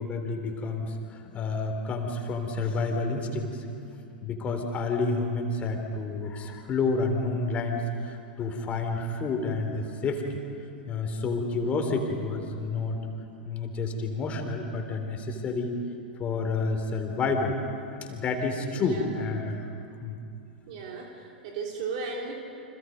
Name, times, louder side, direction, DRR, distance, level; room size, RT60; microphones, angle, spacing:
voice 1, 0.0-3.6 4.2-10.4 10.9-13.0 13.4-15.7 16.2-17.6 17.9-19.6 20.0-20.2, left 3 dB, 25° left, 4 dB, 3.7 m, -29 dB
voice 2, 18.7-19.1 20.7-22.3, right 4 dB, 50° right, 0 dB, 3.2 m, -35 dB
30.0 x 26.0 x 5.4 m, 2.7 s
figure-of-eight pair, 95°, 5 cm